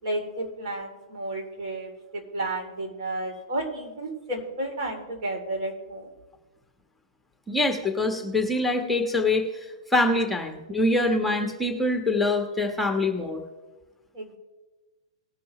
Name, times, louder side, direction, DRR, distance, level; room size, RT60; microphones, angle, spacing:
voice 1, 0.0-6.1 14.1-14.4, right 1 dB, 60° right, 1 dB, 3.3 m, -32 dB
voice 2, 7.5-13.4, left 2 dB, 5° left, 3 dB, 1.3 m, -24 dB
20.0 x 7.0 x 3.2 m, 1.2 s
hypercardioid pair, 130°, 3 cm